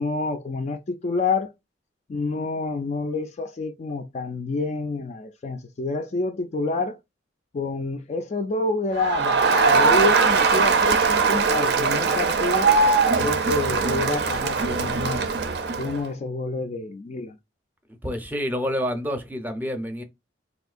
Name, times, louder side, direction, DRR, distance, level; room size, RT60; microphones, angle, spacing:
voice 1, 0.0-1.5 2.1-7.0 7.5-12.7 13.2-15.3 15.8-17.4, left 3 dB, 40° left, 0.3 m, -28 dB
Crowd, 9.0-16.0, right 4 dB, 60° right, 0.5 m, -21 dB
voice 2, 18.0-20.0, equal, 10° right, 0.6 m, -28 dB
3.6 x 2.6 x 2.4 m
head